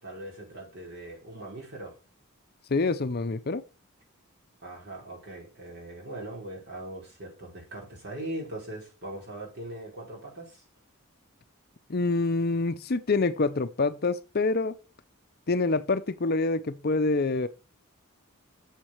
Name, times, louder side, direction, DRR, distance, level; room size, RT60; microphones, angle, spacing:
voice 1, 0.0-1.9 4.6-10.6, right 1 dB, 50° right, 4.7 m, -40 dB
voice 2, 2.7-3.6 11.9-14.7 15.5-17.5, left 3 dB, 45° left, 0.6 m, -26 dB
7.6 x 7.4 x 6.3 m
head